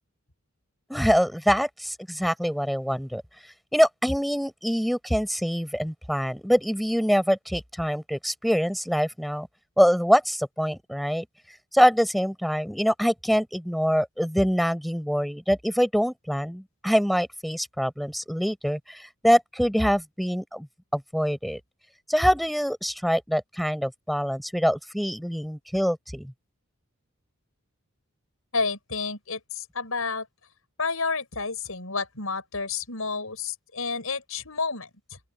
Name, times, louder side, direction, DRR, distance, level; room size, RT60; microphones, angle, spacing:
voice 1, 0.9-3.2 3.7-9.5 9.8-11.2 11.7-20.7 20.9-21.6 22.1-26.3, equal, ahead, 4.8 m, -24 dB
voice 2, 28.5-30.3 30.8-35.2, left 4 dB, 90° left, 6.3 m, -30 dB
open air
head